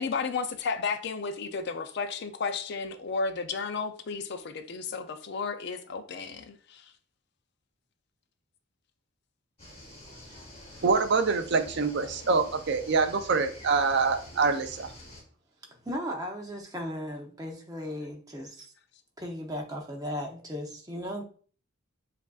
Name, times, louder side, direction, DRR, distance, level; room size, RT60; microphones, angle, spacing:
voice 1, 0.0-6.9, left 4 dB, 50° left, 0.4 m, -33 dB
sound 1, 9.6-15.2, left 1 dB, 30° left, 1.2 m, -47 dB
voice 2, 10.8-14.9, right 4 dB, 55° right, 0.4 m, -25 dB
voice 3, 15.7-18.7 19.2-21.2, equal, 15° right, 0.7 m, -36 dB
7.1 x 2.5 x 2.4 m
head